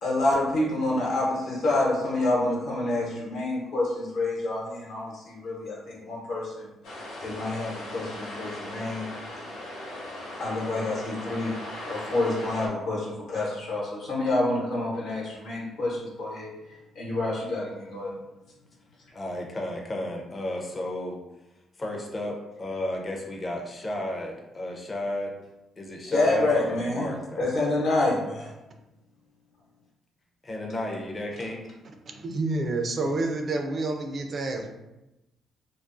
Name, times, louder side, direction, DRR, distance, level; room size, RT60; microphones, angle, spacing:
voice 1, 0.0-6.7 7.2-9.0 10.4-11.5 11.9-18.1 26.0-27.1 27.4-28.5, left 2 dB, 75° left, -4 dB, 0.9 m, -28 dB
sound 1, 6.8-12.7, left 1 dB, 90° left, 0.6 m, -38 dB
voice 2, 19.1-21.2 21.8-25.3 25.8-27.9 30.4-31.6, left 1 dB, 30° left, 0 dB, 0.5 m, -33 dB
voice 3, 32.1-34.7, right 2 dB, 50° right, 4 dB, 0.3 m, -29 dB
2.3 x 2.3 x 2.5 m, 0.95 s
cardioid pair, 90°, 0 cm